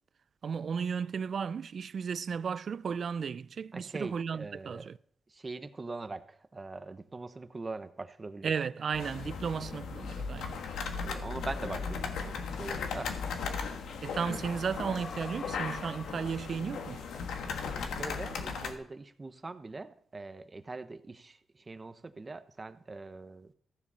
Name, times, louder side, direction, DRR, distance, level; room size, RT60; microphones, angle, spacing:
voice 1, 0.4-5.0 8.4-10.6 14.0-17.0, right 6 dB, 55° right, 0.4 m, -34 dB
voice 2, 3.7-4.9 5.3-8.5 11.0-13.1 14.3-14.4 17.6-23.5, right 3 dB, 30° right, 0.9 m, -42 dB
sound 1, 8.9-18.7, left 5 dB, 90° left, 1.4 m, -37 dB
sound 2, 12.4-18.4, left 4 dB, 45° left, 1.1 m, -49 dB
14.5 x 7.2 x 5.6 m
cardioid pair, 85°, 0 cm